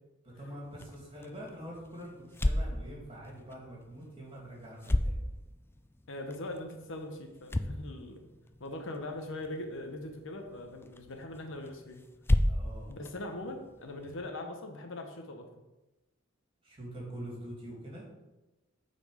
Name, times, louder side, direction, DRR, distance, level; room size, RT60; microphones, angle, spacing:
voice 1, 0.4-5.2 12.4-13.0 16.6-18.1, equal, 25° right, -4 dB, 2.7 m, -45 dB
sound 1, 0.6-14.2, left 1 dB, 10° left, 0.3 m, -36 dB
voice 2, 6.1-8.3 8.6-12.0 12.9-15.5, left 1 dB, 65° left, 4 dB, 1.0 m, -41 dB
8.3 x 4.3 x 5.0 m, 1.0 s
head